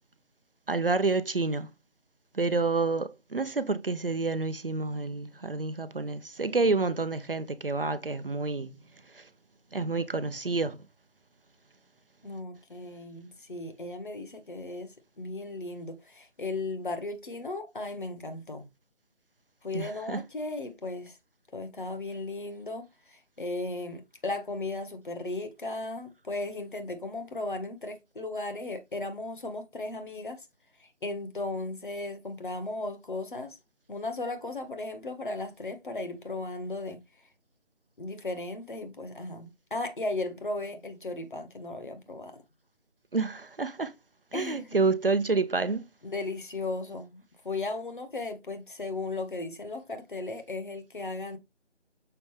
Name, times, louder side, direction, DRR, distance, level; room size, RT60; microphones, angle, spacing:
voice 1, 0.7-1.7 2.3-8.7 9.7-10.8 19.7-20.2 43.1-43.9 44.3-45.8, right 3 dB, 50° right, 0.8 m, -28 dB
voice 2, 12.2-18.7 19.6-21.2 21.5-30.5 30.8-33.6 33.9-37.0 38.0-42.4 44.3-44.8 46.0-51.4, left 2 dB, 45° left, 1.6 m, -36 dB
7.0 x 5.2 x 3.3 m
figure-of-eight pair, 160°, 35 cm